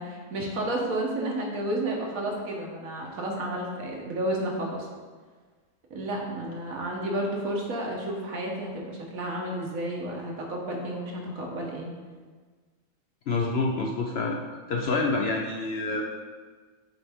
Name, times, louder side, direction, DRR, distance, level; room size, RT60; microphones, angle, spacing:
voice 1, 0.0-4.9 5.9-11.9 15.9-16.0, right 1 dB, 75° right, -1 dB, 1.6 m, -31 dB
voice 2, 13.3-14.4 14.7-16.0, left 3 dB, 65° left, 1 dB, 0.7 m, -27 dB
7.8 x 4.1 x 3.6 m, 1.5 s
omnidirectional pair, 1.5 m